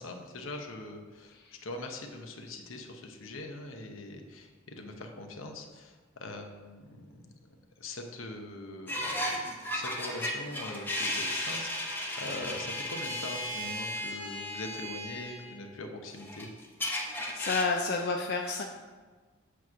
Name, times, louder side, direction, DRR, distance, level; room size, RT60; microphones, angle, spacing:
voice 1, 0.0-1.4 1.6-7.2 7.8-9.3 9.6-16.5, left 2 dB, 75° left, 3 dB, 0.9 m, -42 dB
sound 1, 8.9-15.6 16.1-18.0, left 1 dB, 10° left, 0.9 m, -35 dB
voice 2, 16.9-18.6, left 4 dB, 50° left, 2 dB, 0.5 m, -31 dB
8.1 x 3.1 x 6.2 m, 1.4 s
head